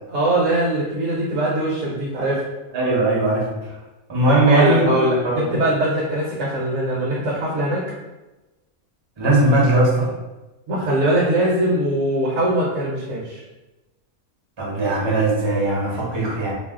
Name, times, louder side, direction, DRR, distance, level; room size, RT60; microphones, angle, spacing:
voice 1, 0.1-2.5 4.3-7.8 10.7-13.4, right 1 dB, 65° right, -5 dB, 1.0 m, -21 dB
voice 2, 2.7-3.5 4.1-4.9 5.2-5.5 9.2-10.1 14.6-16.5, right 2 dB, 30° right, -5 dB, 0.5 m, -19 dB
2.6 x 2.0 x 3.5 m, 1.1 s
omnidirectional pair, 1.5 m